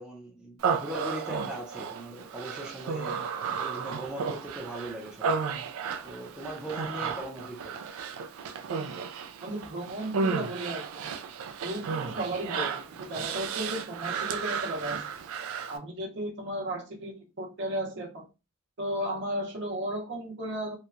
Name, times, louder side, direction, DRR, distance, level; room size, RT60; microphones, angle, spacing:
voice 1, 0.0-3.2 3.5-5.4 6.0-7.8, right 1 dB, 5° right, 0.4 m, -40 dB
Human voice, 0.6-15.8, right 5 dB, 85° right, 0.3 m, -33 dB
voice 2, 9.4-11.1 11.6-15.0 15.7-18.2 18.8-20.7, right 1 dB, 60° right, 0.7 m, -34 dB
2.8 x 2.2 x 2.4 m
head